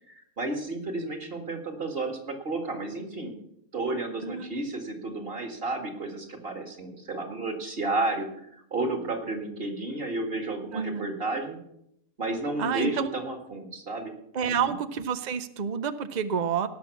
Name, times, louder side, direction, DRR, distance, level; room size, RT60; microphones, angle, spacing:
voice 1, 0.1-3.4 3.7-8.3 8.7-11.6 12.2-14.1 14.4-14.7, right 2 dB, 35° right, 4 dB, 2.1 m, -32 dB
voice 2, 4.2-4.5 10.7-11.1 12.6-13.1 14.3-16.7, right 7 dB, 90° right, 11 dB, 0.4 m, -29 dB
17.5 x 6.1 x 7.0 m, 0.76 s
omnidirectional pair, 1.7 m